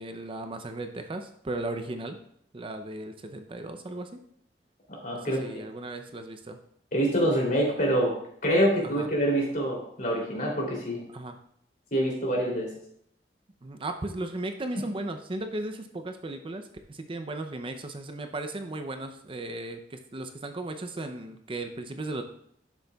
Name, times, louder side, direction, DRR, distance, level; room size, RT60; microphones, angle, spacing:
voice 1, 0.0-2.2 2.5-4.2 5.1-6.6 8.8-9.1 11.1-11.4 13.6-22.2, right 2 dB, 30° right, 7 dB, 0.5 m, -36 dB
voice 2, 4.9-5.4 6.9-8.1 8.4-11.0 11.9-12.7, equal, 50° left, -2 dB, 3.0 m, -26 dB
11.5 x 6.6 x 2.3 m, 0.69 s
head